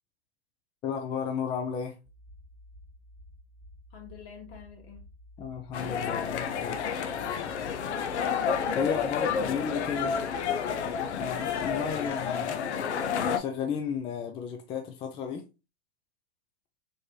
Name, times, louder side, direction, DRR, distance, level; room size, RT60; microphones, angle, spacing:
voice 1, 0.8-1.9 5.4-6.9 8.7-10.1 11.1-12.6 13.3-15.4, left 7 dB, 15° left, 0.4 m, -33 dB
sound 1, 2.0-11.9, equal, 30° right, 0.8 m, -52 dB
voice 2, 3.9-5.0 9.4-10.5, left 3 dB, 60° left, 2.2 m, -46 dB
sound 2, 5.7-13.4, left 7 dB, 75° left, 0.7 m, -30 dB
4.1 x 3.4 x 3.0 m
hypercardioid pair, 125°, 34 cm